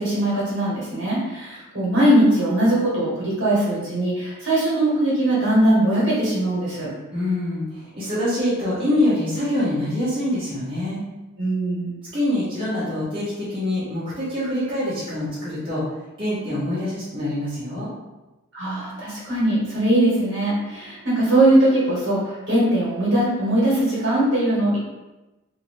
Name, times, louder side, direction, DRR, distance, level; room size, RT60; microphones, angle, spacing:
voice 1, 0.0-6.9 11.4-11.9 18.5-24.8, right 1 dB, 60° right, -7 dB, 1.2 m, -20 dB
voice 2, 7.1-11.0 12.1-15.8 16.2-17.9, left 1 dB, 25° right, -11 dB, 0.8 m, -25 dB
2.7 x 2.5 x 3.0 m, 1.1 s
head